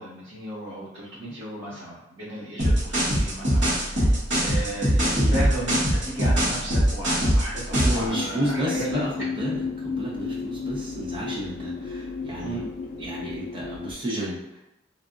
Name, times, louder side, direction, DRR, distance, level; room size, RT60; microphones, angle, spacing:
voice 1, 0.0-9.0 12.4-12.7, right 1 dB, 85° right, -12 dB, 1.1 m, -34 dB
sound 1, 2.6-8.1, equal, 65° right, 1.2 m, -21 dB
voice 2, 7.8-12.6 13.0-14.6, right 1 dB, 25° right, -6 dB, 0.9 m, -31 dB
sound 2, 8.1-13.9, left 5 dB, 50° left, 0.4 m, -32 dB
3.3 x 2.4 x 2.5 m, 0.89 s
head